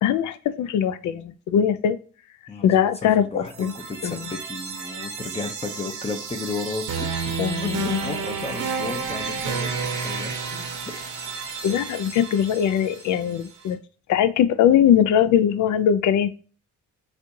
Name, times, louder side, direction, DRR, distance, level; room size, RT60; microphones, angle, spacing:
voice 1, 0.0-2.0 2.6-3.7 4.0-4.4 7.4-8.0 11.6-13.8 14.1-16.3, left 9 dB, 75° left, 12 dB, 0.5 m, -21 dB
voice 2, 2.5-9.7 10.0-10.7 11.3-11.4, left 3 dB, 20° left, 5 dB, 0.6 m, -34 dB
sound 1, 3.5-13.4, right 4 dB, 70° right, 1.0 m, -31 dB
4.2 x 2.5 x 2.7 m, 0.37 s
cardioid pair, 90°, 30 cm